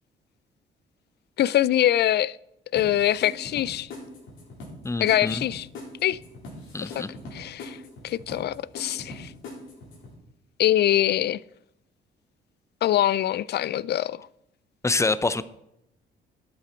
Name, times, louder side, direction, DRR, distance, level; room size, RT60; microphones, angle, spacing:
voice 1, 1.4-2.4 2.7-3.9 5.0-5.7 6.0-6.2 6.8-7.1 7.3-7.8 8.0-9.3 10.6-11.4 12.8-14.3, left 12 dB, 60° left, 0.4 m, -23 dB
sound 1, 2.8-10.1, left 2 dB, 85° left, 4.2 m, -42 dB
voice 2, 4.8-5.4 6.7-7.1 14.8-15.4, left 3 dB, 15° left, 0.6 m, -26 dB
12.5 x 8.4 x 4.4 m
cardioid pair, 90°, 20 cm